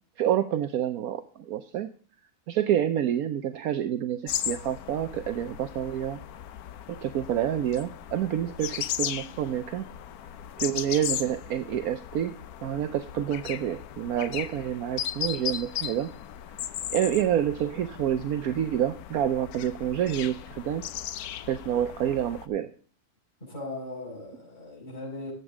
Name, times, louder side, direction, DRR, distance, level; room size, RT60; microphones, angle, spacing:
voice 1, 0.2-1.9 2.5-6.2 6.9-9.9 10.6-16.1 16.9-20.8 21.5-22.7, right 10 dB, 75° right, 1.2 m, -28 dB
sound 1, 4.3-22.5, left 10 dB, 80° left, 1.2 m, -37 dB
voice 2, 23.4-25.3, left 2 dB, 30° left, 5.5 m, -38 dB
12.0 x 8.1 x 3.6 m
omnidirectional pair, 1.6 m